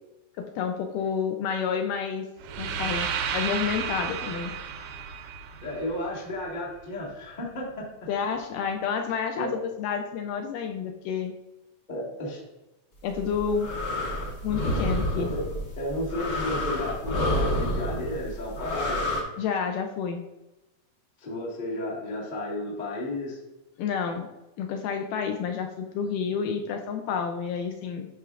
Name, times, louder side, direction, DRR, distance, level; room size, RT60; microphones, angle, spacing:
voice 1, 0.4-2.3 2.6-4.5 8.1-11.3 13.0-13.7 14.4-15.3 19.4-20.2 23.8-24.3 24.6-28.1, left 6 dB, 80° left, 4 dB, 2.0 m, -29 dB
sound 1, 2.4-6.5, right 7 dB, 80° right, 2.1 m, -32 dB
voice 2, 5.6-7.9 9.3-9.5 11.9-12.4 15.1-15.4 15.8-19.0 21.2-23.4, left 1 dB, 40° left, -5 dB, 0.5 m, -33 dB
sound 2, 13.1-19.2, left 1 dB, 60° left, 1.1 m, -29 dB
10.5 x 4.4 x 2.4 m, 1.0 s
omnidirectional pair, 4.1 m